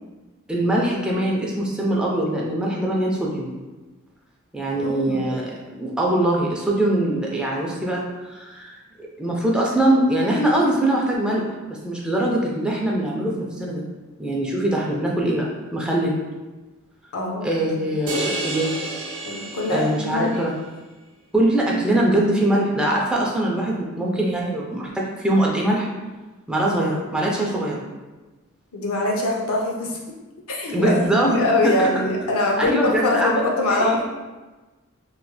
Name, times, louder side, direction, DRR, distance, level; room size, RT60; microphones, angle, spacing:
voice 1, 0.5-3.5 4.5-11.4 11.7-13.8 14.2-16.2 17.4-18.7 19.6-20.5 21.3-25.9 26.5-27.8 30.7-32.0 32.6-34.0, right 1 dB, 5° right, -3 dB, 0.4 m, -22 dB
voice 2, 4.7-5.2 17.1-17.5 19.3-20.4 28.7-30.0 30.5-34.1, left 2 dB, 80° left, -1 dB, 0.6 m, -23 dB
sound 1, 18.1-20.4, right 2 dB, 90° right, 0.6 m, -30 dB
3.0 x 2.9 x 2.2 m, 1.2 s
head